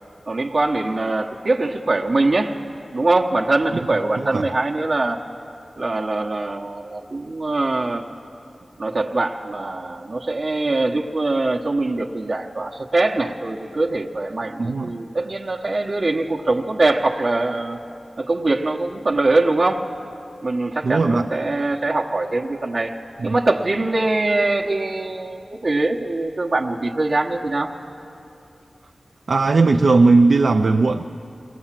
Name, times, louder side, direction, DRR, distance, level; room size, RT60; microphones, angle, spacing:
voice 1, 0.3-2.6 2.9-5.2 5.8-8.0 8.8-17.8 18.2-19.9 20.4-22.9 23.2-27.7, right 2 dB, 55° right, 0 dB, 1.0 m, -22 dB
voice 2, 14.6-14.9 20.8-21.3 23.2-23.3 29.3-31.0, right 3 dB, 75° right, 5 dB, 0.5 m, -17 dB
22.5 x 18.0 x 7.5 m, 2.7 s
wide cardioid pair, 95°, 0 cm